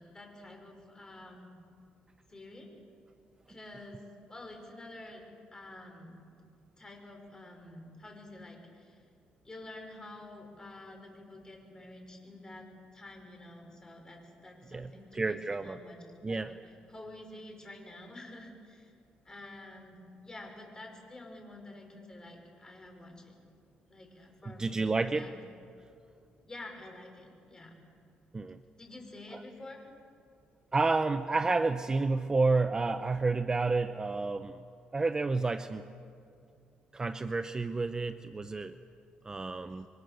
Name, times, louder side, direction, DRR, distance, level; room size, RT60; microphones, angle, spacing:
voice 1, 0.0-1.5 2.3-2.7 3.5-4.0 4.3-6.2 6.8-9.0 9.4-16.5 16.9-18.9 19.3-23.4 23.9-25.3 26.4-27.8 28.7-29.8, left 2 dB, 20° left, 2 dB, 5.3 m, -49 dB
voice 2, 14.7-15.8 16.2-16.5 24.6-25.3 28.3-28.6 29.3-29.4 30.7-34.6 34.9-35.8 36.9-38.7 39.2-39.9, right 3 dB, 20° right, 9 dB, 0.7 m, -30 dB
28.0 x 23.5 x 6.7 m, 2.4 s
cardioid pair, 115°, 3 cm